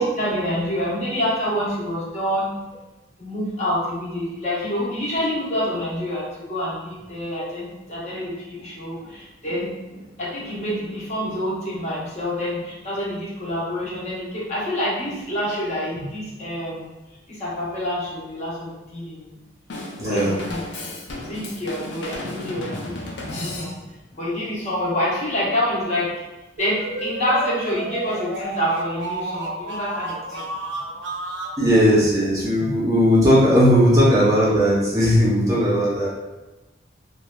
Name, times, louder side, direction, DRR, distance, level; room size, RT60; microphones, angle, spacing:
voice 1, 0.0-2.5 3.2-16.9 17.3-19.4 20.0-20.8 21.2-23.1 23.3-23.8 24.1-26.1 26.6-30.5 31.3-31.4, equal, 35° left, -7 dB, 0.8 m, -27 dB
Drum kit / Drum, 19.7-24.1, left 1 dB, 70° left, 0.5 m, -34 dB
voice 2, 20.0-20.4 31.6-36.1, equal, 15° right, -7 dB, 0.5 m, -17 dB
sound 1, 26.6-31.6, right 1 dB, 80° right, 0.5 m, -31 dB
3.1 x 2.4 x 2.2 m, 1.1 s
head